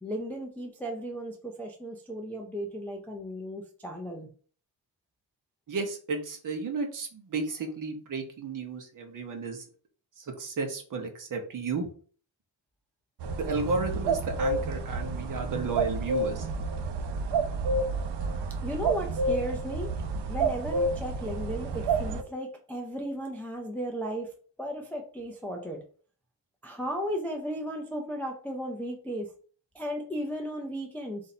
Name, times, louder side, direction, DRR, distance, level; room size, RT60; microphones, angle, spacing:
voice 1, 0.0-4.3 18.6-19.9 20.3-24.3 24.6-25.8 26.6-29.3 29.7-31.2, equal, 5° left, 1 dB, 0.3 m, -35 dB
voice 2, 5.7-9.6 10.2-11.9 13.4-16.5, right 4 dB, 45° right, 4 dB, 0.9 m, -33 dB
sound 1, 13.2-22.2, right 3 dB, 65° right, 0.6 m, -30 dB
4.2 x 2.6 x 4.1 m, 0.42 s
wide cardioid pair, 175°, 45 cm